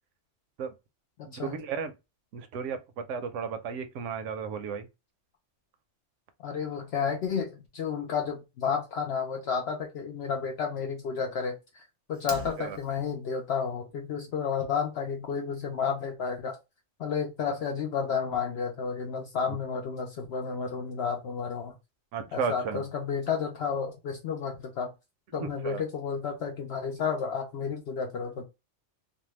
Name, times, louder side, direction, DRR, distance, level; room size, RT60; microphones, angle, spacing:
voice 1, 1.3-1.9 2.3-4.9 12.6-12.8 22.1-22.8 25.4-25.8, right 6 dB, 80° right, 0.9 m, -34 dB
voice 2, 6.4-11.6 12.1-16.5 17.0-21.7 22.3-24.9 25.3-28.4, left 6 dB, 65° left, 0.8 m, -31 dB
Fire, 12.1-13.1, right 1 dB, 15° right, 0.5 m, -42 dB
2.7 x 2.2 x 3.0 m
omnidirectional pair, 1.2 m